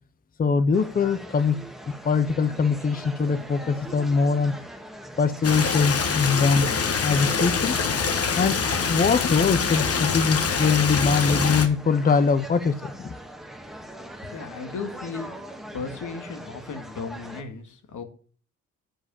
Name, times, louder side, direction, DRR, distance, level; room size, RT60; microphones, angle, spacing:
voice 1, 0.4-1.6 1.9-4.5 5.2-6.7 7.0-7.7 8.3-8.6 8.9-13.1, left 5 dB, 30° left, 12 dB, 0.6 m, -22 dB
sound 1, 0.7-17.4, right 1 dB, ahead, 1.5 m, -41 dB
Stream, 5.4-11.7, left 5 dB, 50° left, 1.3 m, -25 dB
voice 2, 14.3-15.4 15.7-18.0, left 5 dB, 75° left, 5 dB, 1.9 m, -35 dB
8.8 x 5.1 x 6.7 m, 0.41 s
cardioid pair, 110°, 31 cm